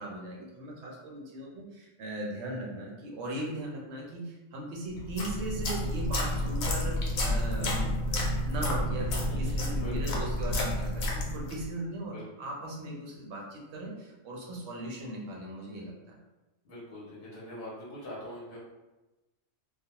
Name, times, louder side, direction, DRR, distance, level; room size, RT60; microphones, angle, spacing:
voice 1, 0.0-16.1, right 1 dB, 65° right, -2 dB, 0.8 m, -38 dB
sound 1, 5.0-11.7, left 1 dB, 80° left, 1.0 m, -30 dB
voice 2, 9.3-10.0 12.0-12.3 16.6-18.6, equal, 50° left, -7 dB, 0.8 m, -43 dB
2.4 x 2.2 x 2.8 m, 1.1 s
omnidirectional pair, 1.4 m